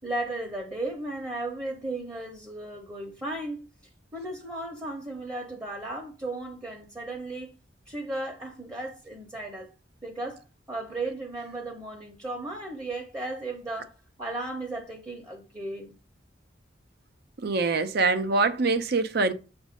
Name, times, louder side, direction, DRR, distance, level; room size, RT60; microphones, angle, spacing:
voice 1, 0.0-3.7 4.1-7.6 7.9-9.7 10.0-15.9, right 2 dB, 15° right, 0.9 m, -35 dB
voice 2, 17.4-19.3, right 3 dB, 55° right, 0.6 m, -24 dB
7.1 x 2.6 x 5.2 m
head